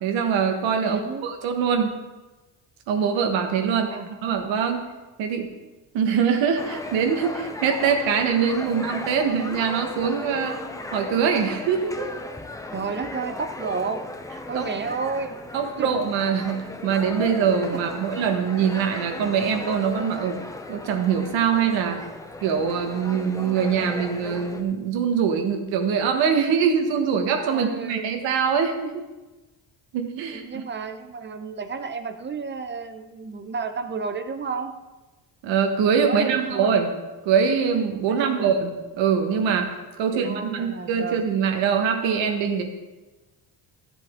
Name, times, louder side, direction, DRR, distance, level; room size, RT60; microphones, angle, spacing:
voice 1, 0.0-1.9 2.9-3.9 4.2-4.8 5.2-5.5 5.9-10.6 10.9-12.1 14.5-14.7 15.5-20.4 20.7-22.0 22.4-28.9 29.9-30.4 35.4-36.9 37.2-39.7 40.0-42.6, right 6 dB, 90° right, 5 dB, 1.5 m, -23 dB
voice 2, 0.8-1.3 3.7-4.1 8.7-8.8 12.7-14.0 14.5-15.4 15.8-15.9 17.7-18.0 27.5-28.0 30.3-34.8 36.0-36.7 38.1-38.5 40.0-41.2, right 5 dB, 25° right, 9 dB, 0.7 m, -32 dB
sound 1, 6.6-24.6, left 2 dB, 10° left, 0.6 m, -36 dB
13.5 x 7.7 x 3.7 m, 1.1 s
cardioid pair, 120°, 43 cm